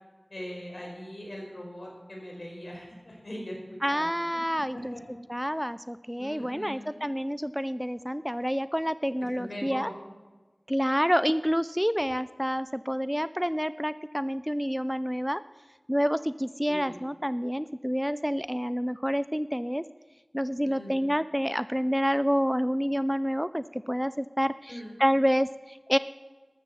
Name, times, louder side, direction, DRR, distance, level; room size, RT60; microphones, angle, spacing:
voice 1, 0.3-4.1 4.7-5.0 6.2-7.0 9.3-9.9 16.7-17.0 20.6-21.0 24.7-24.9, equal, 70° left, -1 dB, 4.8 m, -41 dB
voice 2, 3.8-4.9 5.3-9.9 10.7-15.4 15.9-19.8 20.3-26.0, equal, ahead, 14 dB, 0.4 m, -28 dB
14.0 x 13.0 x 4.2 m, 1.3 s
wide cardioid pair, 40°, 0 cm